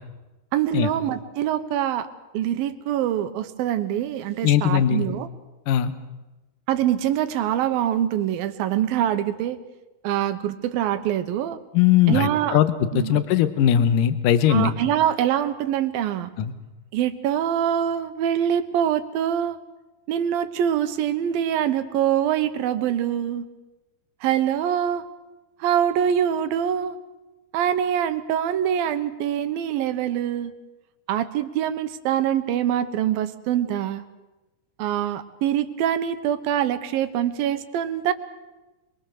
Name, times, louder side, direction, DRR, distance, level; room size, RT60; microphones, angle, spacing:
voice 1, 0.5-2.1 2.3-5.3 6.7-9.6 10.0-11.6 12.1-12.6 12.9-13.2 14.5-16.3 16.9-19.6 20.1-23.4 24.2-25.0 25.6-27.0 27.5-30.5 31.1-34.0 34.8-38.1, right 10 dB, 80° right, 11 dB, 2.9 m, -24 dB
voice 2, 4.4-5.1 5.7-5.9 11.7-14.7 16.4-16.5, left 10 dB, 70° left, 11 dB, 2.6 m, -20 dB
26.0 x 23.0 x 6.6 m, 1.1 s
omnidirectional pair, 4.1 m